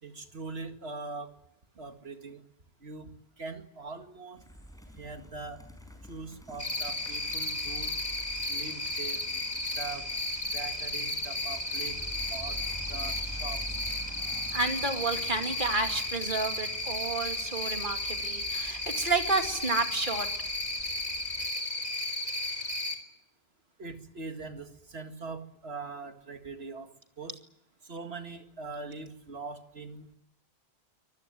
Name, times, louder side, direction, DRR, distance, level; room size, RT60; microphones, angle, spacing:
voice 1, 0.0-1.3 1.8-2.4 2.8-3.1 3.4-4.5 5.0-5.6 6.1-7.9 8.5-9.2 9.8-10.1 10.5-12.0 12.3-12.6 12.9-13.8 23.8-27.4 27.8-30.1, right 3 dB, 80° right, 6 dB, 2.3 m, -42 dB
sound 1, 4.4-21.5, equal, 5° left, 5.2 m, -47 dB
Cricket, 6.6-22.9, left 2 dB, 40° left, 3.6 m, -34 dB
voice 2, 14.5-20.3, right 3 dB, 50° right, 5 dB, 2.6 m, -30 dB
25.0 x 19.5 x 9.4 m, 0.80 s
omnidirectional pair, 1.0 m